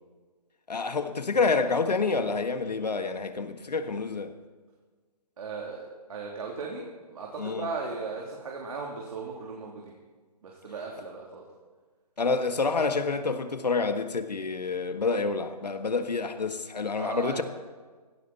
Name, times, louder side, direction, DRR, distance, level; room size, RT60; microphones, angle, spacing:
voice 1, 0.7-4.3 7.4-7.7 12.2-17.4, left 4 dB, 90° left, 1.6 m, -28 dB
voice 2, 5.4-9.9 10.4-11.4 17.0-17.4, right 4 dB, 60° right, 3.0 m, -37 dB
18.0 x 16.5 x 4.2 m
hypercardioid pair, 155°, 20 cm